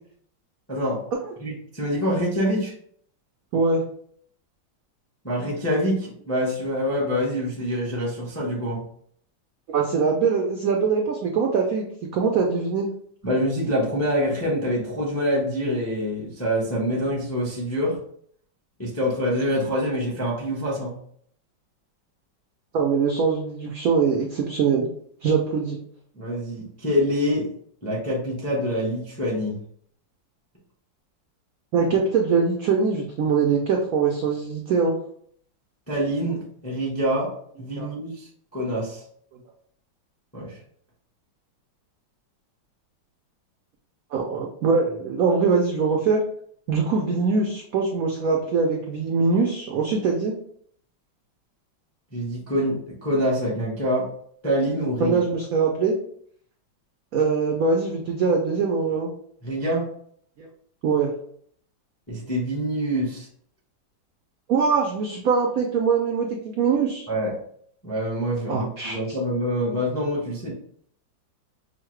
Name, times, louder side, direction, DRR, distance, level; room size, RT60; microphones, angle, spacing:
voice 1, 0.7-1.0 1.4-2.7 5.2-8.8 13.2-18.0 18.8-21.0 26.1-27.5 27.8-29.6 35.9-37.3 37.6-39.0 40.3-40.6 52.1-54.0 54.4-55.2 59.4-59.9 62.1-63.3 67.1-67.3 67.8-70.5, equal, 20° left, -3 dB, 0.4 m, -25 dB
voice 2, 9.7-11.8 12.1-12.8 22.7-24.9 25.2-25.8 31.7-34.9 37.8-37.9 44.1-46.2 46.7-50.3 55.0-56.0 57.1-59.1 60.8-61.1 64.5-66.3 66.6-67.1 68.5-69.2, right 5 dB, 85° right, 1 dB, 0.7 m, -22 dB
5.5 x 2.1 x 3.1 m, 0.64 s
omnidirectional pair, 2.1 m